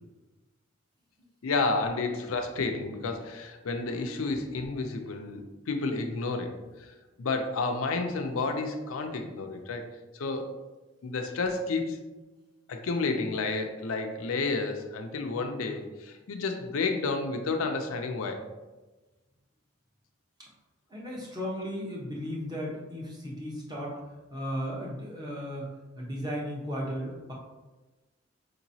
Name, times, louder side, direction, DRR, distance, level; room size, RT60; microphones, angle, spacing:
voice 1, 1.4-9.9 10.1-10.5 11.0-12.0 12.7-18.4, left 3 dB, 90° left, 5 dB, 0.5 m, -31 dB
voice 2, 20.9-23.9 24.3-25.7 26.0-27.3, equal, 20° right, -4 dB, 0.9 m, -35 dB
5.3 x 2.9 x 2.7 m, 1.1 s
head